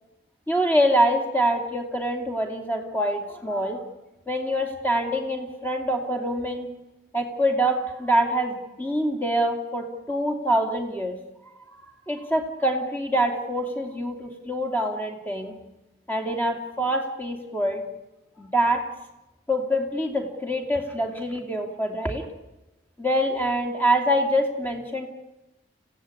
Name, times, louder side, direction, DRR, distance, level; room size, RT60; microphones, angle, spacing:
voice 1, 0.5-3.8 4.3-6.7 7.1-11.2 11.7-11.8 12.1-15.5 16.1-17.8 18.4-18.9 19.5-22.3 23.0-25.1, equal, 10° left, 4 dB, 2.6 m, -25 dB
26.5 x 16.0 x 9.8 m, 1.0 s
head